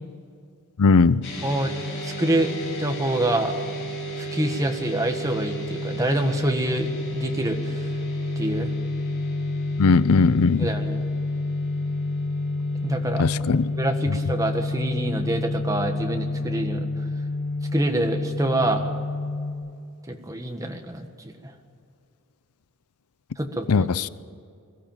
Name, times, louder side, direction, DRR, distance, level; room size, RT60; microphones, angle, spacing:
voice 1, 0.8-1.3 9.8-10.7 13.2-13.6 23.7-24.1, left 4 dB, 85° left, 0.5 m, -18 dB
sound 1, 1.2-19.5, left 2 dB, 55° left, 6.7 m, -29 dB
voice 2, 2.0-3.5 4.2-7.9 8.4-8.7 10.6-11.0 12.8-13.3 13.5-16.9 17.7-18.9 20.1-21.5 23.4-23.7, right 1 dB, 15° right, 1.5 m, -26 dB
21.0 x 14.5 x 9.1 m
head